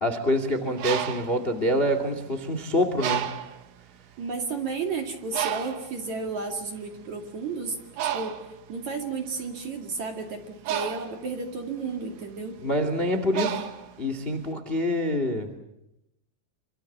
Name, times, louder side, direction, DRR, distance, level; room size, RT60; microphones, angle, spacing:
voice 1, 0.0-3.3 12.6-13.7 14.0-15.5, equal, 50° left, 9 dB, 0.7 m, -26 dB
Bird, 0.6-2.4 3.0-3.7 4.3-4.5 4.7-14.5, right 10 dB, 70° right, 3.8 m, -33 dB
voice 2, 4.2-7.8 8.1-8.4 8.7-12.6, right 4 dB, 45° right, 3 dB, 2.8 m, -32 dB
26.5 x 25.5 x 7.4 m, 0.85 s
omnidirectional pair, 5.9 m